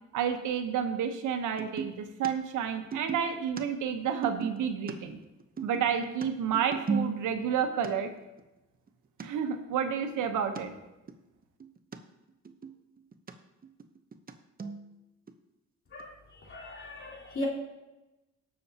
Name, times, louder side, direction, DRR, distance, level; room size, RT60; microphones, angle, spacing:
voice 1, 0.1-5.2 5.6-8.1 9.2-10.7, right 7 dB, 80° right, 6 dB, 1.2 m, -30 dB
sound 1, 1.6-2.0 2.2-2.3 2.6-4.9 5.2-7.5 7.8-7.9 8.4-8.5 8.9-9.0 9.2-9.3 9.6-10.6 11.1-11.2 11.4-12.0 12.3-13.3 13.6-14.3 14.6-14.9 15.3-15.4 16.0-16.1, right 5 dB, 30° right, 0.9 m, -36 dB
voice 2, 16.5-17.5, left 1 dB, 40° left, -2 dB, 3.5 m, -37 dB
18.0 x 7.0 x 2.9 m, 1.0 s
cardioid pair, 90°, 30 cm